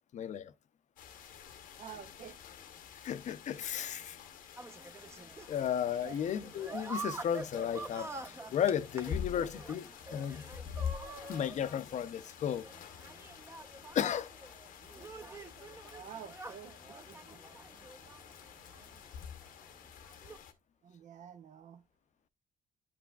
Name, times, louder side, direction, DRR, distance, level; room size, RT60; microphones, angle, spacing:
voice 1, 0.1-0.5 3.0-4.2 5.5-10.4 11.3-12.7 13.9-14.3, left 9 dB, 60° left, 0.6 m, -34 dB
sound 1, 1.0-20.5, left 8 dB, 85° left, 0.9 m, -47 dB
voice 2, 1.8-2.4 5.9-6.2 15.9-17.4 20.8-21.8, right 8 dB, 60° right, 0.7 m, -49 dB
sound 2, 4.6-20.4, right 3 dB, 20° right, 0.7 m, -48 dB
9.4 x 5.9 x 2.3 m
cardioid pair, 90°, 14 cm